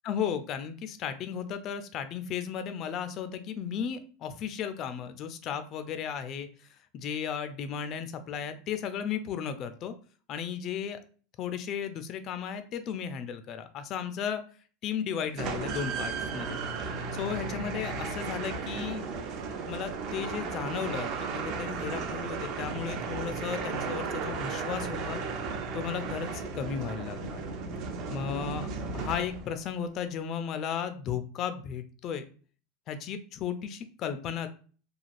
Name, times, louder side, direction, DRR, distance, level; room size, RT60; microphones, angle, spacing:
voice 1, 0.0-6.7 6.9-9.9 10.3-11.0 11.4-14.4 14.8-16.6 17.1-19.1 19.7-25.2 25.7-27.4 28.1-28.7 28.9-32.2 32.9-34.5, left 8 dB, 40° left, 9 dB, 0.3 m, -35 dB
sound 1, 15.4-29.6, right 4 dB, 50° right, 0.5 m, -35 dB
3.1 x 2.3 x 2.4 m, 0.40 s
supercardioid pair, 135°, 0 cm